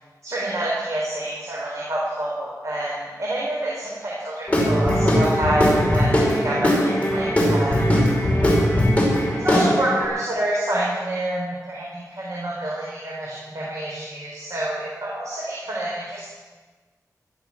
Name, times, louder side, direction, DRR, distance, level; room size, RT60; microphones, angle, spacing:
voice 1, 0.2-7.9 9.4-16.3, right 1 dB, 55° right, -5 dB, 4.4 m, -27 dB
Guitar / Drum, 4.5-10.1, equal, 20° left, 5.3 m, -20 dB
16.0 x 13.0 x 6.1 m, 1.3 s
wide cardioid pair, 75°, 7 cm